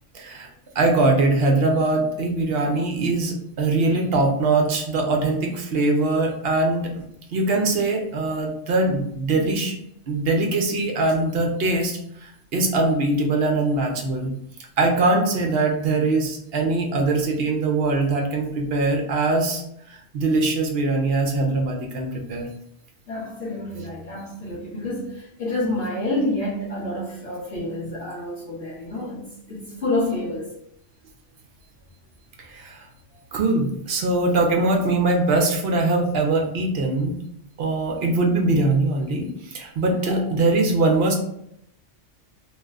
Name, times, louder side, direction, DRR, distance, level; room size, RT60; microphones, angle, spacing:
voice 1, 0.1-0.5 0.7-7.1 7.3-9.7 10.1-14.3 14.8-22.5 32.4-32.9 33.3-37.1 37.6-41.1, right 2 dB, 60° right, 2 dB, 0.8 m, -22 dB
voice 2, 23.1-30.5 40.1-40.2, left 1 dB, 65° left, -9 dB, 1.3 m, -28 dB
3.1 x 2.1 x 3.5 m, 0.74 s
omnidirectional pair, 1.2 m